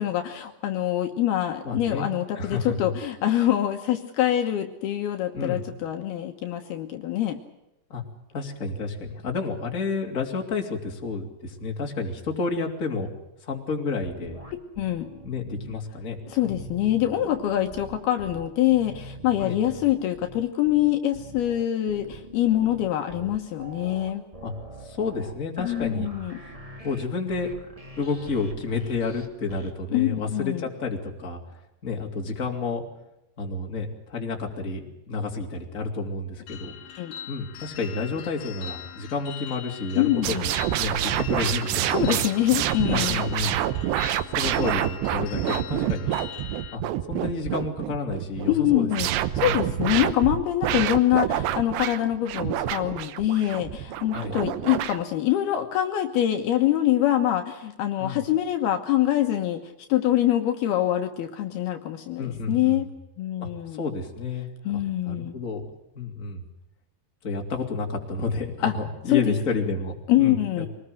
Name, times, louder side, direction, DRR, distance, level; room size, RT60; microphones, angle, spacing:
voice 1, 0.0-7.4 14.8-15.1 16.3-24.2 25.6-26.4 29.9-30.7 37.0-37.1 40.0-40.5 41.9-43.2 48.5-49.1 49.4-59.6 59.9-62.9 63.2-63.8 64.6-65.4 68.6-68.7 69.1-69.3 70.1-70.7, left 13 dB, 70° left, 6 dB, 3.0 m, -24 dB
voice 2, 1.6-2.9 5.3-5.7 7.9-8.0 8.3-13.1 13.4-14.4 15.2-16.2 16.4-16.6 19.4-19.6 24.4-24.5 24.8-26.1 26.8-27.5 28.0-31.4 31.8-32.8 33.4-37.0 37.3-42.2 42.9-43.6 44.3-46.1 46.7-46.8 47.1-49.8 54.1-54.4 58.0-58.2 62.2-62.8 63.4-65.7 65.9-66.4 67.2-70.7, left 4 dB, 20° left, 2 dB, 2.8 m, -30 dB
sound 1, 14.0-15.8 16.2-29.7, right 2 dB, 15° right, 1.4 m, -43 dB
sound 2, 36.5-46.8, left 9 dB, 55° left, 2.9 m, -41 dB
sound 3, 40.2-55.0, right 12 dB, 80° right, 3.1 m, -27 dB
24.5 x 19.5 x 7.8 m, 0.88 s
omnidirectional pair, 4.9 m